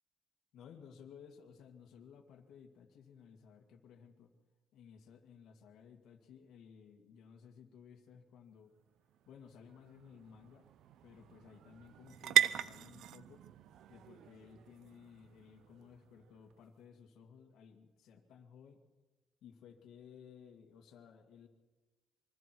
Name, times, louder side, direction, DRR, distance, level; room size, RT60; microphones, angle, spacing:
voice 1, 0.5-4.3 4.7-8.7 9.3-10.6 11.0-13.4 13.9-18.8 19.4-21.5, left 7 dB, 80° left, 2 dB, 2.2 m, -57 dB
sound 1, 8.7-16.6, right 11 dB, 80° right, 0.7 m, -38 dB
26.0 x 23.5 x 4.7 m, 1.2 s
cardioid pair, 90°, 0 cm